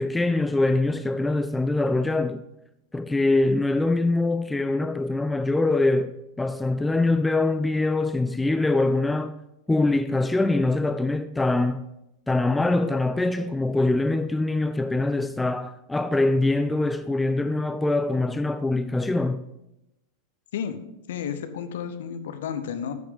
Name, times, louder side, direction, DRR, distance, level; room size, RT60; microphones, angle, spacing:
voice 1, 0.0-2.4 2.9-9.3 9.7-11.9 12.3-19.4, left 2 dB, 10° left, 0.3 m, -23 dB
voice 2, 21.1-22.9, left 8 dB, 60° left, 0.9 m, -32 dB
14.0 x 6.2 x 3.7 m
figure-of-eight pair, 90°, 0 cm